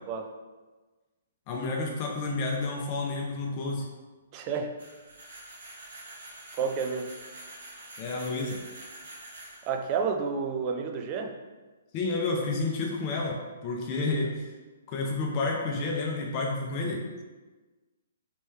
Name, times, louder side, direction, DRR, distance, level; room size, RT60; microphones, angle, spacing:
voice 1, 1.5-3.9 8.0-8.6 11.9-14.5 14.9-17.0, left 3 dB, 35° left, -1 dB, 0.6 m, -30 dB
voice 2, 4.3-4.8 6.5-7.1 9.7-11.4, right 5 dB, 30° right, 4 dB, 0.4 m, -30 dB
sound 1, 4.8-10.0, right 1 dB, 75° right, 1.3 m, -46 dB
3.4 x 3.1 x 3.2 m, 1.2 s
hypercardioid pair, 145°, 0 cm